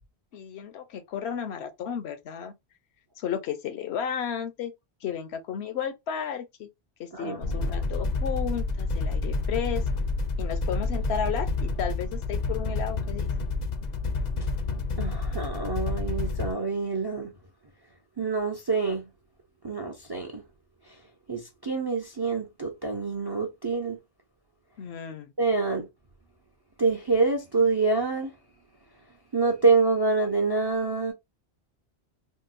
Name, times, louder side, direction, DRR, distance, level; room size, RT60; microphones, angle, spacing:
voice 1, 0.3-2.5 3.2-4.7 5.0-6.7 7.0-9.8 10.4-13.3 24.8-25.3, left 8 dB, 80° left, 0.9 m, -33 dB
voice 2, 7.1-7.7 15.0-17.3 18.2-19.1 19.6-20.4 21.3-24.0 25.4-25.9 26.8-28.3 29.3-31.1, right 4 dB, 35° right, 0.4 m, -26 dB
sound 1, 7.4-16.5, left 3 dB, 55° left, 0.5 m, -29 dB
3.7 x 2.1 x 2.5 m
omnidirectional pair, 1.1 m